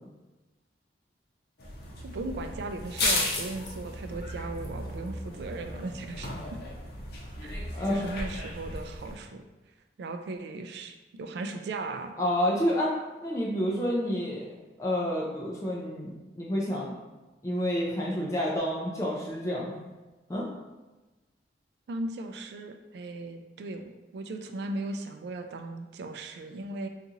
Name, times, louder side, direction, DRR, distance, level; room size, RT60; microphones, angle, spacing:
sound 1, 1.6-9.1, left 2 dB, 60° left, 0.7 m, -35 dB
voice 1, 2.0-6.3 7.4-9.4 10.0-12.1 21.9-23.8 24.1-26.9, right 2 dB, 65° right, 6 dB, 0.3 m, -37 dB
voice 2, 7.7-8.1 12.2-12.9 13.2-14.5 14.8-16.9 17.4-19.7 20.3-20.5, equal, 15° left, -4 dB, 0.4 m, -29 dB
4.0 x 2.4 x 2.8 m, 1.1 s
head